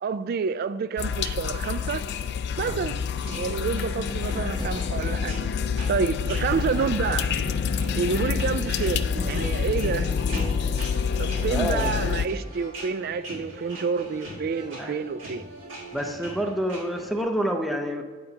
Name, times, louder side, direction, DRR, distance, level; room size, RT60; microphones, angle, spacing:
voice 1, 0.0-2.1 2.6-3.0 3.3-5.3 5.9-7.3 8.0-10.1 11.2-15.4, right 5 dB, 50° right, 0.3 m, -28 dB
sound 1, 1.0-12.3, left 6 dB, 60° left, 0.3 m, -27 dB
sound 2, 2.6-4.0 4.6-10.3, equal, 20° right, 1.2 m, -42 dB
sound 3, 3.1-17.2, right 1 dB, 70° right, 1.6 m, -39 dB
voice 2, 11.5-11.9 14.8-15.0 15.9-18.0, equal, ahead, 0.6 m, -27 dB
8.5 x 4.4 x 3.9 m
head